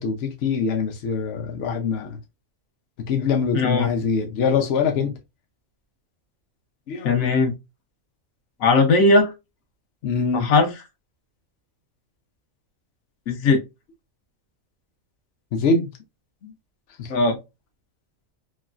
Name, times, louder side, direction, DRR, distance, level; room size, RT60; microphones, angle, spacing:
voice 1, 0.0-2.2 3.1-5.2 6.9-7.2 10.0-10.5 15.5-15.9 16.4-16.5 17.0-17.1, left 5 dB, 60° left, 0.7 m, -24 dB
voice 2, 3.5-3.9 7.0-7.5 8.6-9.3 10.3-10.7 13.3-13.6 17.1-17.4, left 3 dB, 85° left, 1.2 m, -18 dB
3.0 x 2.3 x 2.4 m
omnidirectional pair, 1.4 m